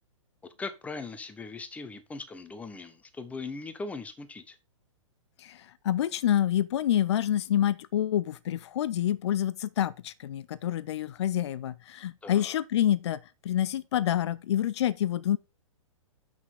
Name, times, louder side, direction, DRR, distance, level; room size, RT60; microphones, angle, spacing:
voice 1, 0.6-4.6 12.2-12.6, left 3 dB, 10° left, 0.8 m, -39 dB
voice 2, 5.4-15.4, left 11 dB, 55° left, 0.5 m, -27 dB
7.4 x 6.1 x 3.7 m
figure-of-eight pair, 120°, 17 cm